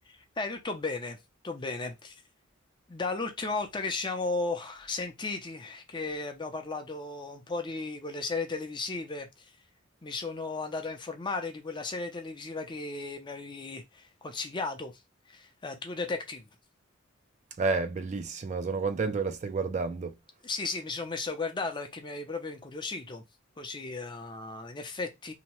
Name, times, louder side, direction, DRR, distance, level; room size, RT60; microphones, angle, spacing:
voice 1, 0.4-1.2 1.4-2.1 2.9-9.4 10.0-14.9 15.3-16.5 20.4-23.2 23.6-25.3, left 3 dB, 25° left, 0.5 m, -35 dB
voice 2, 17.6-20.1, right 4 dB, 35° right, 0.3 m, -30 dB
2.8 x 2.1 x 2.9 m
head